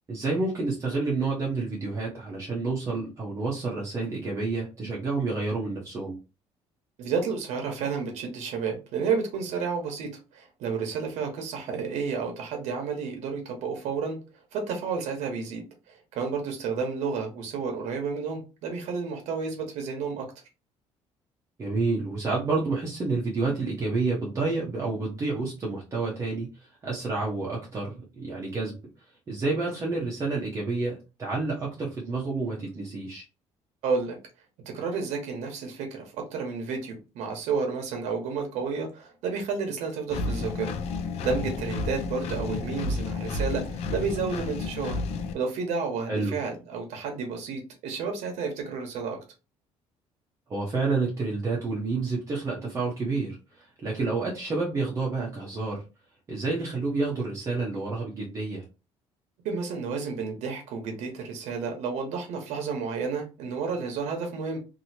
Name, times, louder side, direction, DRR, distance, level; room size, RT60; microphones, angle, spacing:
voice 1, 0.1-6.2 21.6-26.5 26.8-28.7 29.3-33.2 46.1-46.4 50.5-55.8 56.3-58.6, right 3 dB, 25° right, 0.8 m, -29 dB
voice 2, 7.0-14.2 14.5-20.3 33.8-34.2 34.7-36.0 36.3-40.7 41.2-45.0 45.3-49.2 59.4-64.6, right 5 dB, 85° right, 1.1 m, -31 dB
Engine, 40.1-45.3, left 3 dB, 65° left, 0.5 m, -31 dB
2.9 x 2.7 x 2.7 m
cardioid pair, 155°, 11 cm